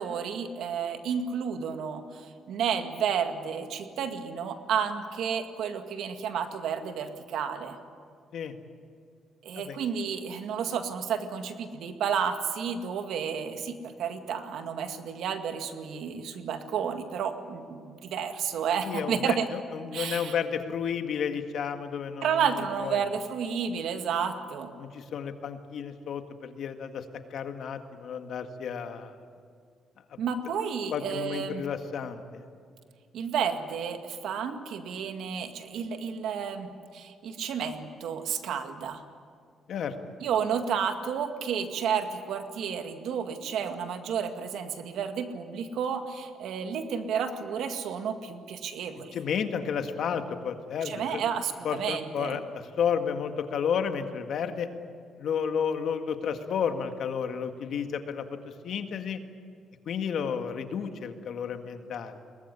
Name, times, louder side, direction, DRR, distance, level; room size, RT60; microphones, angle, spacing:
voice 1, 0.0-7.8 9.4-19.5 19.9-20.3 22.2-24.7 30.2-31.6 33.1-39.0 40.2-49.2 50.8-52.4, right 7 dB, 80° right, 7 dB, 2.0 m, -31 dB
voice 2, 18.9-19.4 19.7-22.4 22.8-23.0 24.8-27.0 27.3-29.1 30.1-30.2 30.9-32.4 39.7-39.9 49.1-51.2 51.6-54.7 55.2-58.4 58.6-59.2 59.9-62.2, left 7 dB, 65° left, 7 dB, 1.9 m, -32 dB
22.0 x 20.0 x 10.0 m, 2.1 s
cardioid pair, 90°, 0 cm